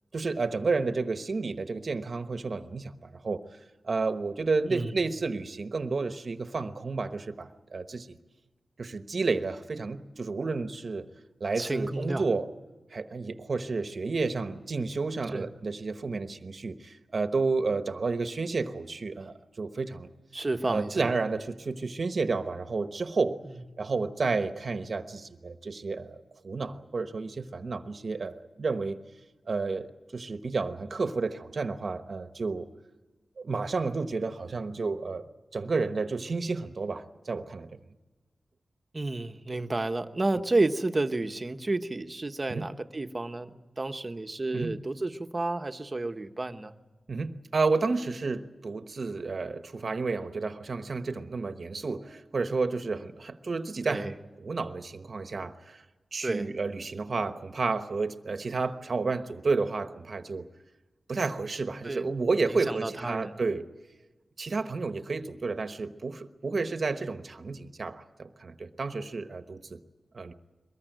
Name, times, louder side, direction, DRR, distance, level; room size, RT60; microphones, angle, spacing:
voice 1, 0.1-3.4 3.8-8.2 8.8-11.1 11.4-12.5 12.9-20.1 20.7-23.4 23.8-26.2 26.4-29.0 29.5-29.9 30.1-32.7 33.4-35.2 35.5-37.8 42.5-42.7 44.5-44.7 47.1-55.8 56.1-60.5 61.1-63.6 64.4-69.8 70.1-70.3, right 4 dB, 50° right, 8 dB, 1.1 m, -31 dB
voice 2, 11.6-12.2 15.3-15.5 20.3-21.1 23.4-23.6 38.9-46.7 53.9-54.1 56.2-56.5 61.8-62.1 62.5-63.4, right 2 dB, 25° right, 7 dB, 1.1 m, -31 dB
23.5 x 20.5 x 9.2 m, 1.2 s
wide cardioid pair, 125°, 0 cm